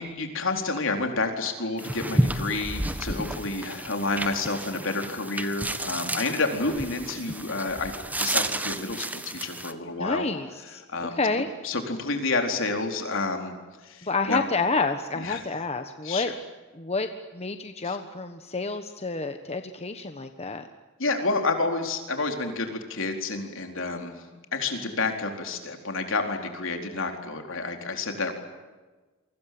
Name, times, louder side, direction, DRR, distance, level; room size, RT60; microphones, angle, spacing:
voice 1, 0.0-10.2 10.9-11.2 11.6-13.5 13.8-14.4 15.2-15.4 16.0-16.3 17.8-18.0 21.0-24.2 24.5-28.3, left 3 dB, 65° left, 4 dB, 4.3 m, -29 dB
sound 1, 1.8-9.7, right 1 dB, 10° right, 1.4 m, -31 dB
voice 2, 10.0-10.8 11.2-11.5 14.0-16.3 16.7-20.7, left 3 dB, 30° left, 7 dB, 1.3 m, -29 dB
29.0 x 24.5 x 7.9 m, 1.3 s
head